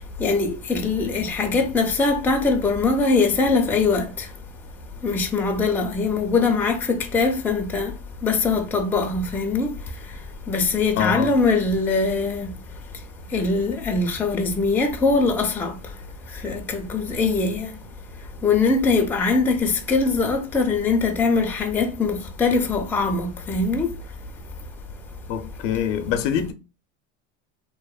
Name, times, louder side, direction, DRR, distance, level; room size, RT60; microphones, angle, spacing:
voice 1, 0.2-4.1 5.0-7.9 8.2-9.7 10.5-12.5 13.3-15.7 16.4-17.7 18.4-23.9, left 4 dB, 5° left, 0.3 m, -22 dB
voice 2, 11.0-11.3 25.3-26.5, left 9 dB, 70° left, 0.5 m, -24 dB
2.8 x 2.0 x 2.3 m
supercardioid pair, 105°, 38 cm